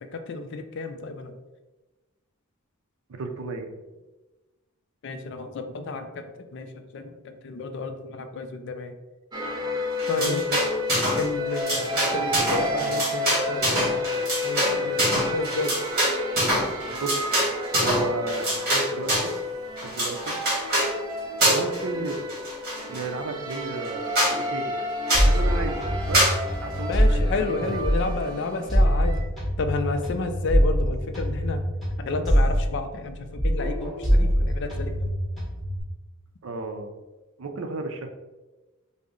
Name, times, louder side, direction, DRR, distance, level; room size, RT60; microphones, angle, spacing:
voice 1, 0.1-1.4 5.0-9.0 10.1-10.4 11.2-14.1 14.4-15.8 26.9-29.2 29.6-31.6 32.0-35.1, left 3 dB, 55° left, 7 dB, 0.4 m, -31 dB
voice 2, 3.1-3.7 10.2-10.4 17.0-17.3 17.8-19.3 19.8-20.3 21.5-22.2 22.8-24.9 25.2-25.8 26.1-26.3 26.6-27.9 36.4-36.9 37.4-38.1, right 3 dB, 75° right, 5 dB, 0.5 m, -33 dB
sound 1, 9.3-29.2, left 2 dB, 20° right, 0.5 m, -31 dB
sound 2, 10.0-11.2 11.5-19.4 19.8-20.9 21.4-21.8 22.1-23.0 23.5-23.6 23.8-23.9 24.1-24.4 25.1-25.3 26.1-26.4, right 1 dB, 45° right, 1.5 m, -25 dB
sound 3, 25.1-28.2 28.7-33.1 33.4-35.8, equal, ahead, 1.0 m, -24 dB
3.8 x 2.0 x 3.6 m, 1.1 s
head